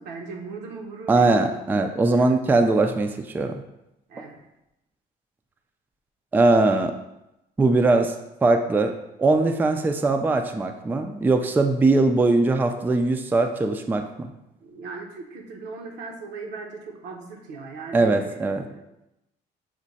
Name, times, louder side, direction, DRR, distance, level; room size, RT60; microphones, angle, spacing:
voice 1, 0.0-1.4 2.1-2.3 4.1-4.4 14.6-18.8, right 4 dB, 85° right, 2 dB, 0.8 m, -38 dB
voice 2, 1.1-3.5 6.3-6.9 7.6-8.1 8.4-8.9 9.2-14.3 17.9-18.7, right 3 dB, 10° right, 6 dB, 0.3 m, -21 dB
6.1 x 2.2 x 4.0 m, 0.89 s
cardioid pair, 110°, 17 cm